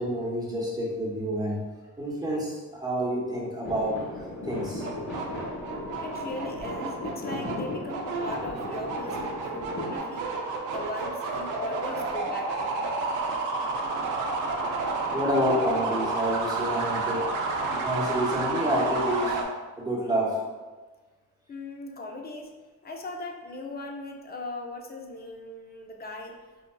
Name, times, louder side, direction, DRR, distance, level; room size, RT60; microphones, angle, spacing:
voice 1, 0.0-1.6 2.0-4.0 4.5-4.8 15.1-17.3 17.8-19.4 19.8-20.4, equal, 15° right, -5 dB, 1.0 m, -28 dB
sound 1, 3.6-10.0, left 2 dB, 65° left, 1.4 m, -37 dB
sound 2, 4.5-19.4, right 3 dB, 80° right, 0.6 m, -31 dB
voice 2, 6.0-10.3 10.7-12.8 21.5-22.5 22.8-26.4, left 2 dB, 30° left, 3 dB, 0.5 m, -38 dB
4.3 x 2.5 x 2.2 m, 1.3 s
cardioid pair, 90°, 30 cm